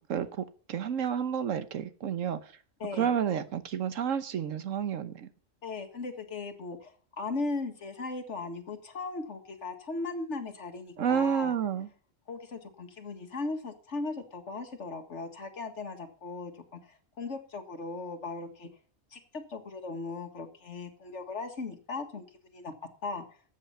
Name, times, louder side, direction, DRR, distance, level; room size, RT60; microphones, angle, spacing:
voice 1, 0.1-2.4 3.0-5.3 11.0-11.9, right 8 dB, 80° right, 1.3 m, -30 dB
voice 2, 2.8-3.1 5.6-11.5 12.3-18.7 19.1-22.7 23.0-23.3, left 3 dB, 65° left, 2.0 m, -38 dB
13.5 x 8.4 x 5.6 m
omnidirectional pair, 1.3 m